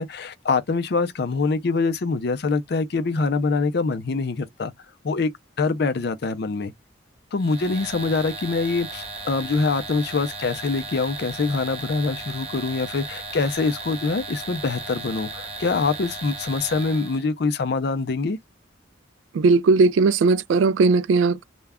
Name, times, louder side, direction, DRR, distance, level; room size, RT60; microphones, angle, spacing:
voice 1, 0.0-4.7 5.0-5.3 5.6-6.7 7.3-18.4, left 4 dB, 60° left, 0.5 m, -24 dB
sound 1, 7.4-17.3, right 3 dB, 30° right, 0.8 m, -36 dB
voice 2, 19.3-21.4, right 4 dB, 85° right, 0.3 m, -18 dB
2.3 x 2.1 x 3.4 m
head